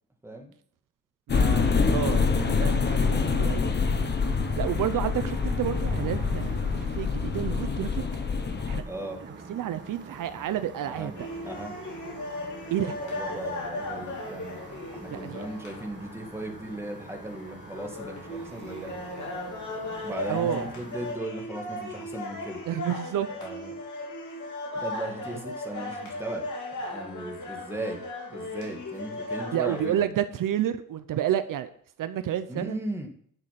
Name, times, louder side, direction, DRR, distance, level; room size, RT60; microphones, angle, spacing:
voice 1, 0.2-0.5 8.8-9.2 10.9-11.1 11.4-11.7 12.8-14.6 14.9-19.0 20.0-22.6 23.3-23.7 24.7-26.4 26.9-28.0 28.3-30.0 32.5-33.1, right 1 dB, 5° right, 2 dB, 1.9 m, -37 dB
sound 1, 1.3-8.8, left 5 dB, 30° left, 0.9 m, -26 dB
voice 2, 1.3-3.7 4.6-8.0 8.7-8.8 9.2-11.3 12.7-13.0 15.1-15.4 20.3-20.6 22.7-23.3 29.5-31.7 32.0-32.8, right 11 dB, 70° right, 12 dB, 0.7 m, -30 dB
sound 2, 1.9-21.1, right 3 dB, 35° right, 1.7 m, -45 dB
sound 3, 11.1-30.0, left 2 dB, 60° left, 3.2 m, -37 dB
11.0 x 6.7 x 5.8 m, 0.62 s
cardioid pair, 150°, 34 cm